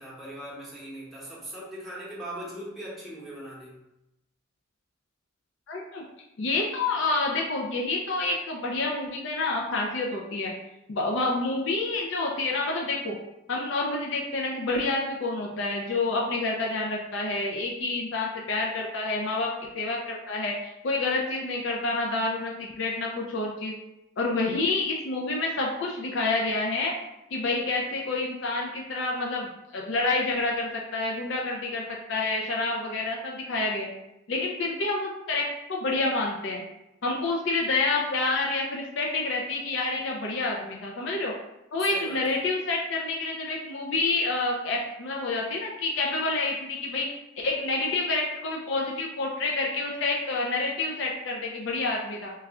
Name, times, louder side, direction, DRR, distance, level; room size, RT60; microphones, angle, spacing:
voice 1, 0.0-3.8 41.8-42.4, right 1 dB, ahead, -8 dB, 0.9 m, -40 dB
voice 2, 5.7-6.0 6.4-10.5 10.9-13.2 13.5-23.8 24.2-26.9 27.3-31.8 32.1-33.9 34.3-36.6 37.0-41.3 41.7-47.1 47.4-52.3, left 3 dB, 60° left, -1 dB, 0.4 m, -28 dB
3.2 x 2.4 x 3.6 m, 0.91 s
head